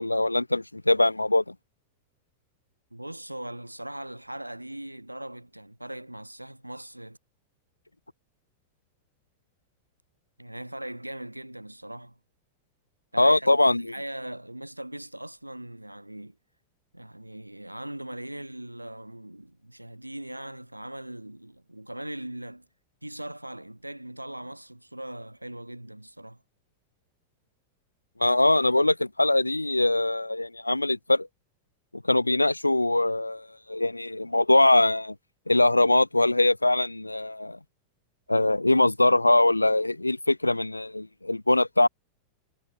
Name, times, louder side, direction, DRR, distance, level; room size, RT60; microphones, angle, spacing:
voice 1, 0.0-1.5 13.2-13.9 28.2-31.3 31.9-35.1 35.5-37.6 38.3-41.9, left 2 dB, 85° left, 0.7 m, -22 dB
voice 2, 2.9-7.2 10.4-12.2 13.1-13.5 13.8-16.4 16.9-22.7 23.0-26.4, right 1 dB, 85° right, 7.1 m, -40 dB
figure-of-eight pair, 90°, 0 cm